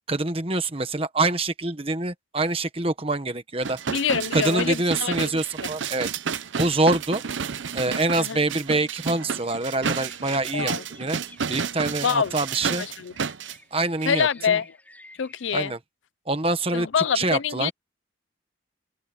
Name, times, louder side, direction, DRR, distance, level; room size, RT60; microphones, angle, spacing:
voice 1, 0.1-3.8 4.3-6.1 6.5-7.2 7.7-11.2 11.5-12.8 13.7-14.6 15.5-15.8 16.3-16.9 17.1-17.7, right 2 dB, 30° right, 1.4 m, -25 dB
sound 1, 3.6-13.6 14.0-14.1, right 6 dB, 80° right, 0.7 m, -31 dB
voice 2, 3.9-5.3 8.2-8.4 10.5-10.8 12.0-12.3 12.8-13.1 14.1-14.7 15.2-15.7 16.7-17.7, left 7 dB, 80° left, 0.5 m, -25 dB
sound 2, 8.6-15.5, left 2 dB, 10° left, 6.2 m, -53 dB
open air
head